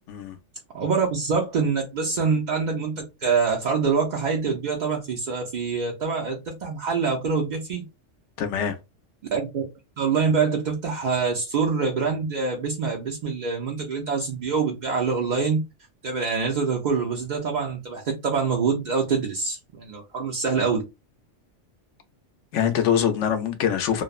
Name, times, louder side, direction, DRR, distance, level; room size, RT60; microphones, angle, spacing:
voice 1, 0.7-7.8 9.3-9.7 10.0-15.6 16.0-20.9, right 5 dB, 60° right, 0.4 m, -25 dB
voice 2, 8.4-8.8 22.5-24.0, left 8 dB, 70° left, 0.9 m, -23 dB
3.0 x 2.0 x 2.3 m
omnidirectional pair, 1.3 m